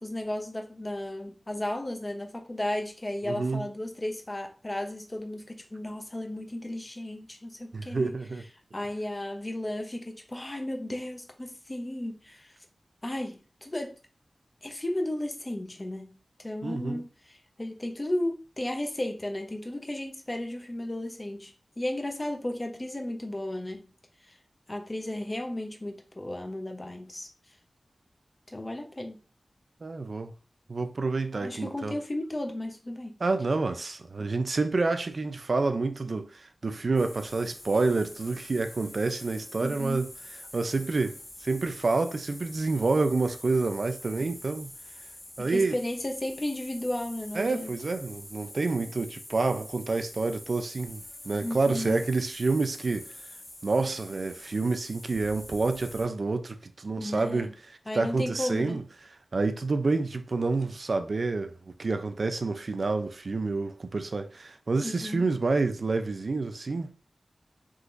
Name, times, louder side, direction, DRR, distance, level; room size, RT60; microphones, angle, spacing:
voice 1, 0.0-8.1 8.7-12.5 13.0-13.9 14.6-23.9 24.3-24.4 24.7-27.3 28.5-29.2 31.3-33.2 39.6-40.1 45.4-47.7 51.4-52.0 57.0-57.5 57.9-58.8 64.8-65.3, left 1 dB, 30° left, 0.7 m, -34 dB
voice 2, 3.3-3.7 7.7-8.4 16.6-17.0 29.8-30.3 30.7-32.0 33.2-40.1 40.5-44.7 45.4-45.8 47.4-53.1 53.6-57.5 57.9-58.8 59.3-66.9, right 3 dB, 65° right, 0.4 m, -28 dB
sound 1, 36.9-56.0, left 1 dB, 85° left, 1.3 m, -46 dB
3.7 x 2.8 x 2.5 m
cardioid pair, 50°, 0 cm